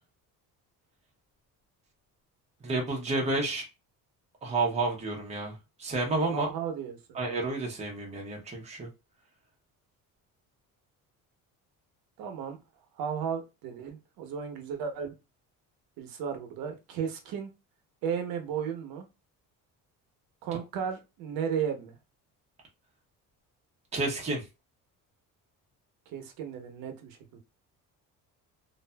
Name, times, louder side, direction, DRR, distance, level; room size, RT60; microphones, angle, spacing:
voice 1, 2.6-3.6 4.4-6.5 7.1-8.9 23.9-24.4, right 2 dB, 20° right, 0.7 m, -30 dB
voice 2, 6.3-7.2 12.2-12.6 13.0-15.1 16.0-17.5 18.0-19.0 20.4-22.0 26.1-27.4, right 7 dB, 80° right, 0.8 m, -34 dB
2.6 x 2.5 x 2.2 m
cardioid pair, 160°, 35 cm